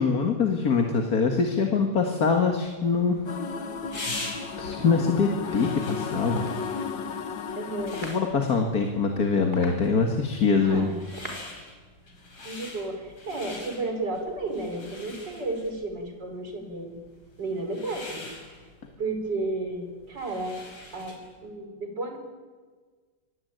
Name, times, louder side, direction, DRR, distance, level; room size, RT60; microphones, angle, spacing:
voice 1, 0.0-3.2 4.6-6.4 8.0-10.9 12.4-12.5, left 5 dB, 50° left, 4 dB, 2.2 m, -24 dB
sound 1, 2.9-21.4, left 2 dB, 85° left, 5.9 m, -44 dB
sound 2, 3.2-8.1, left 5 dB, 70° left, 2.1 m, -34 dB
sound 3, 5.5-11.7, right 1 dB, 20° right, 5.2 m, -46 dB
voice 2, 7.6-8.0 10.6-11.4 12.5-17.0 17.4-18.3 19.0-20.6 20.9-22.2, right 2 dB, 60° right, 5 dB, 5.3 m, -33 dB
26.0 x 22.5 x 9.3 m, 1.5 s
omnidirectional pair, 2.1 m